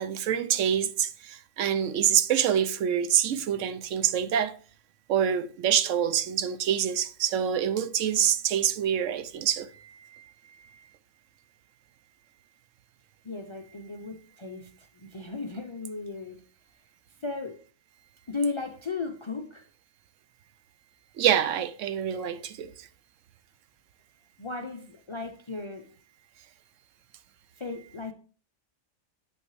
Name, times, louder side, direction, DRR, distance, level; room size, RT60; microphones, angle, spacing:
voice 1, 0.0-4.5 5.1-10.2 21.2-22.9, right 9 dB, 80° right, 1.0 m, -26 dB
voice 2, 13.2-16.4 17.2-17.6 18.3-19.6 24.4-25.9 27.6-28.1, left 3 dB, 45° left, 0.4 m, -35 dB
8.0 x 5.5 x 3.1 m
omnidirectional pair, 1.3 m